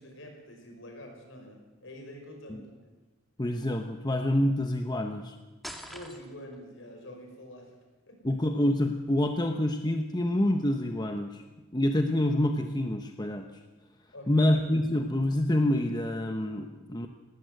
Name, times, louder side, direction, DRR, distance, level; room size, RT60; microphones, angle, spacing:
voice 1, 0.0-2.8 5.8-7.8 8.1-8.4 14.1-14.6, left 1 dB, 60° left, 3 dB, 5.7 m, -46 dB
voice 2, 3.4-5.4 8.2-11.4 11.7-13.5 14.3-17.1, left 1 dB, 20° left, 5 dB, 1.0 m, -27 dB
sound 1, 5.6-6.6, equal, ahead, 1.9 m, -43 dB
18.5 x 18.5 x 8.0 m, 1.2 s
head